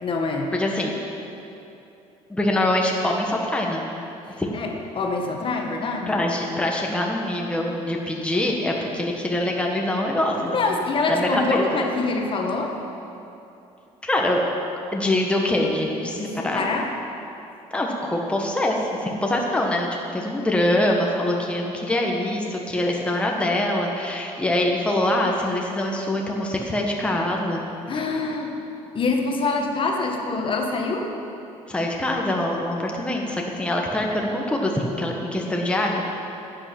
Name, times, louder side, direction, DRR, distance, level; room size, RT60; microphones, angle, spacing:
voice 1, 0.0-0.5 4.3-6.2 10.4-12.7 16.1-16.9 27.9-28.5 28.9-31.1, left 3 dB, 40° left, 2 dB, 1.4 m, -25 dB
voice 2, 0.5-0.9 2.3-3.9 4.4-4.6 6.1-10.8 11.1-11.6 14.0-14.4 14.9-16.6 17.7-27.7 31.7-36.0, left 1 dB, 10° left, 0 dB, 1.2 m, -24 dB
11.0 x 8.9 x 5.9 m, 2.8 s
cardioid pair, 100°, 13 cm